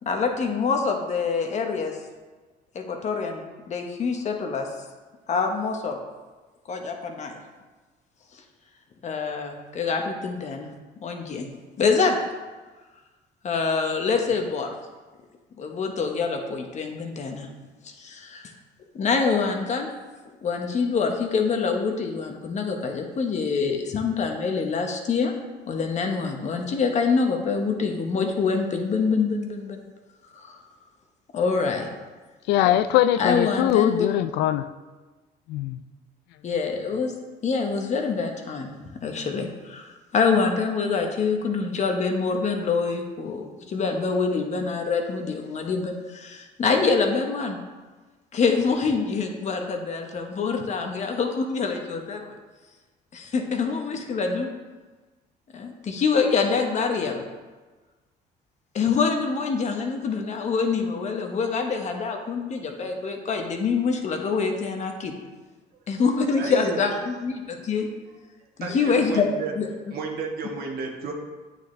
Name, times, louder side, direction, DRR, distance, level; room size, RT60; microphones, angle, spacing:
voice 1, 0.0-2.0 2.7-4.7 5.3-6.0 6.7-7.3 8.3-8.4 9.0-10.7 11.0-11.5 11.8-12.2 13.4-14.7 15.6-17.5 17.8-18.5 18.9-19.9 20.4-25.3 25.7-29.8 30.3-30.6 31.3-31.9 33.2-34.1 36.4-37.1 37.4-38.7 39.0-47.6 48.3-52.4 53.1-54.5 55.5-57.2 58.7-65.1 65.9-67.9 68.6-69.3 69.5-69.7, left 5 dB, 45° left, 1.1 m, -25 dB
voice 2, 32.5-34.6 35.5-35.8, left 12 dB, 85° left, 0.4 m, -21 dB
voice 3, 66.4-67.0 68.6-69.5 69.9-71.1, right 4 dB, 65° right, 1.4 m, -32 dB
9.1 x 6.6 x 3.3 m
cardioid pair, 110°, 17 cm